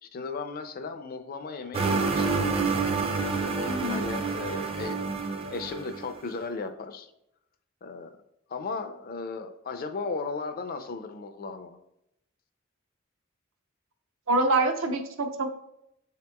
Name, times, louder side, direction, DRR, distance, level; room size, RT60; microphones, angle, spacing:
voice 1, 0.0-2.7 3.3-7.1 7.8-8.1 8.5-11.8, left 4 dB, 45° left, 8 dB, 0.4 m, -36 dB
sound 1, 1.7-6.1, right 4 dB, 30° right, 0.4 m, -28 dB
voice 2, 3.6-4.0 14.3-15.5, right 2 dB, 75° right, 5 dB, 0.6 m, -25 dB
7.4 x 2.8 x 2.2 m, 0.80 s
head